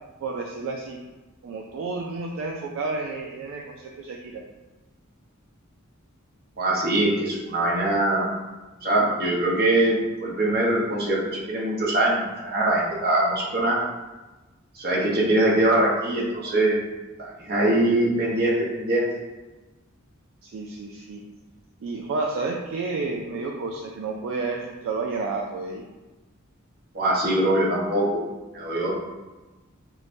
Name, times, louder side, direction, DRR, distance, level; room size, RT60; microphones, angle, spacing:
voice 1, 0.2-1.0 1.4-4.4 20.4-21.2 21.8-25.8, right 3 dB, 65° right, 0 dB, 0.3 m, -31 dB
voice 2, 6.6-8.3 8.8-13.8 14.7-16.8 17.2-19.1 26.9-28.2 28.5-28.9, right 1 dB, 50° right, -4 dB, 0.8 m, -22 dB
4.5 x 2.1 x 2.6 m, 1.2 s
head